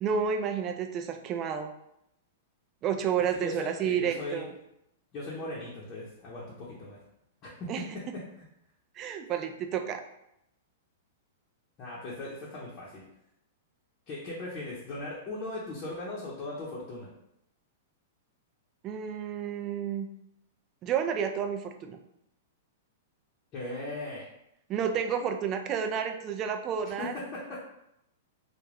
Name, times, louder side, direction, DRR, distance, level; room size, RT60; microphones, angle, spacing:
voice 1, 0.0-1.7 2.8-4.5 7.7-7.8 9.0-10.0 18.8-20.1 20.8-22.0 24.7-27.1, right 7 dB, 30° right, 5 dB, 0.3 m, -30 dB
voice 2, 3.3-4.5 5.1-7.0 7.4-7.7 11.8-13.1 14.1-17.1 23.5-24.3 26.8-27.6, left 2 dB, 30° left, -7 dB, 0.7 m, -38 dB
2.4 x 2.2 x 3.3 m, 0.80 s
hypercardioid pair, 140°, 0 cm